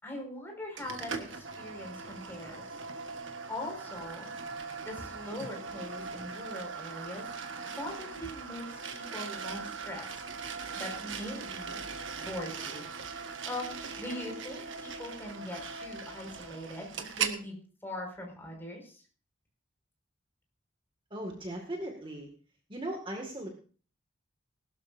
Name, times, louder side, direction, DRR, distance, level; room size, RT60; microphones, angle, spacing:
voice 1, 0.0-2.7 3.5-4.3 4.8-7.2 7.8-10.1 10.8-11.8 12.1-19.0, left 1 dB, 10° left, 0 dB, 5.4 m, -41 dB
sound 1, 0.8-17.4, right 5 dB, 70° right, 1.5 m, -40 dB
voice 2, 21.1-22.3 22.7-23.5, right 1 dB, 25° right, 2 dB, 2.1 m, -38 dB
20.0 x 12.5 x 2.7 m, 0.40 s
head